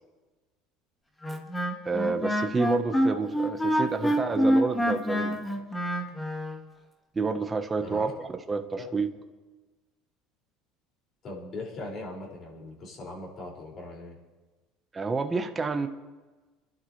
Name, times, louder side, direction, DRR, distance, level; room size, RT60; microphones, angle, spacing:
Wind instrument woodwind instrument, 1.2-6.6, equal, 5° left, 1.8 m, -26 dB
voice 1, 1.8-5.4 7.1-8.1 8.5-9.1 14.9-15.9, right 4 dB, 15° right, 6 dB, 1.1 m, -29 dB
voice 2, 3.8-4.4 7.8-8.1 8.8-8.9 11.2-14.2, left 2 dB, 40° left, -2 dB, 5.7 m, -40 dB
26.5 x 12.0 x 3.3 m, 1.2 s
cardioid pair, 130°, 0 cm